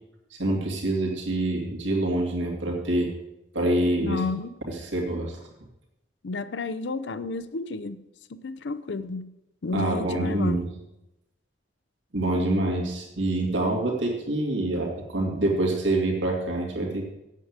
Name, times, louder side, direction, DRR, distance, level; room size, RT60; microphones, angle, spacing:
voice 1, 0.3-3.1 3.5-4.2 4.7-5.4 9.7-10.7 12.1-17.1, right 1 dB, 85° right, 2.4 m, -26 dB
voice 2, 4.0-4.5 6.2-8.0 8.3-9.3 9.6-10.6, left 3 dB, 70° left, 0.6 m, -31 dB
8.3 x 7.9 x 7.4 m
head